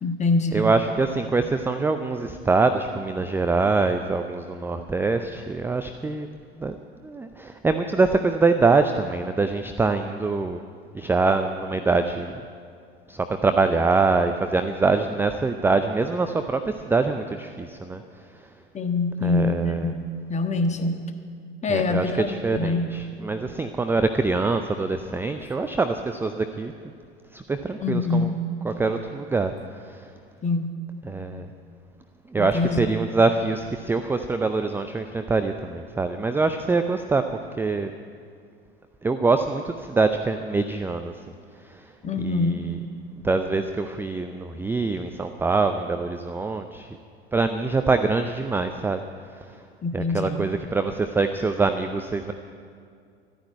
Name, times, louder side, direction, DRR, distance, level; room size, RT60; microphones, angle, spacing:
voice 1, 0.0-0.7 18.7-21.0 21.6-22.9 27.8-28.4 30.4-30.7 32.4-32.9 42.0-42.7 49.8-50.4, left 3 dB, 20° left, 6 dB, 1.4 m, -25 dB
voice 2, 0.5-6.8 7.0-10.6 10.9-12.3 13.1-18.0 19.2-19.9 21.7-26.7 27.3-28.3 28.6-29.5 29.9-30.0 31.1-31.5 32.3-37.9 39.0-41.1 42.2-42.8 43.2-47.0 47.3-49.0 49.9-52.3, right 3 dB, 5° right, 8 dB, 0.5 m, -24 dB
13.0 x 9.7 x 9.5 m, 2.3 s
figure-of-eight pair, 75°, 32 cm